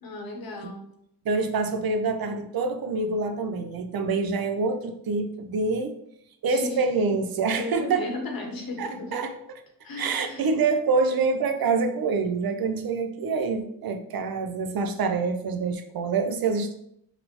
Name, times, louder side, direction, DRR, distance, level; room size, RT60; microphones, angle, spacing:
voice 1, 0.0-0.8 6.5-6.8 7.6-9.1 9.8-10.5, left 3 dB, 65° left, 1 dB, 0.9 m, -35 dB
voice 2, 1.3-5.9 6.4-8.0 8.8-9.6 10.0-16.8, right 4 dB, 70° right, 7 dB, 0.5 m, -26 dB
4.1 x 2.0 x 2.8 m, 0.73 s
cardioid pair, 50°, 38 cm